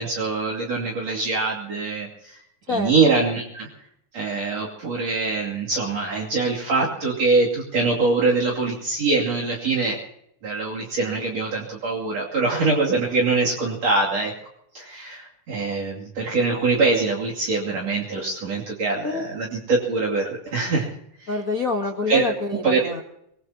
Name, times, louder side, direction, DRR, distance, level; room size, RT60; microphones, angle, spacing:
voice 1, 0.0-2.4 2.7-3.7 4.1-10.0 10.4-14.3 14.7-20.9 21.2-21.3 22.1-22.3 22.6-23.0, right 3 dB, 55° right, -2 dB, 3.7 m, -23 dB
voice 2, 21.3-23.0, left 3 dB, 55° left, 3 dB, 0.9 m, -26 dB
24.0 x 19.5 x 2.9 m, 0.74 s
omnidirectional pair, 3.6 m